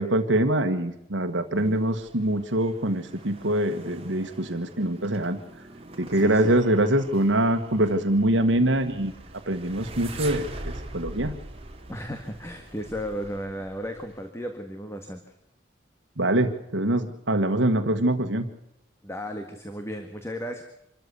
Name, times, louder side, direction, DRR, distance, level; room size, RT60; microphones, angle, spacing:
voice 1, 0.0-5.4 6.0-9.1 9.5-11.3 16.2-18.5, right 1 dB, 80° right, 7 dB, 1.5 m, -24 dB
sound 1, 1.6-14.3, right 2 dB, 30° right, 2.4 m, -43 dB
voice 2, 6.1-6.6 11.9-15.3 19.0-20.6, equal, 15° left, 5 dB, 1.7 m, -35 dB
26.0 x 14.0 x 8.2 m, 0.81 s
head